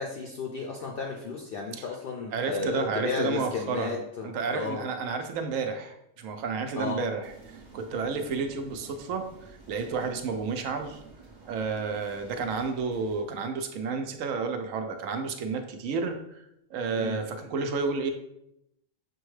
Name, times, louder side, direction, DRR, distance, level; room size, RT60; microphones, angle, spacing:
voice 1, 0.0-4.9 6.8-7.0 17.0-17.2, left 5 dB, 65° left, 0 dB, 0.6 m, -34 dB
voice 2, 2.3-11.0 11.5-18.1, right 4 dB, 85° right, 6 dB, 1.0 m, -31 dB
sound 1, 7.2-13.2, right 4 dB, 45° right, 0.7 m, -51 dB
6.1 x 2.3 x 3.1 m, 0.81 s
omnidirectional pair, 1.3 m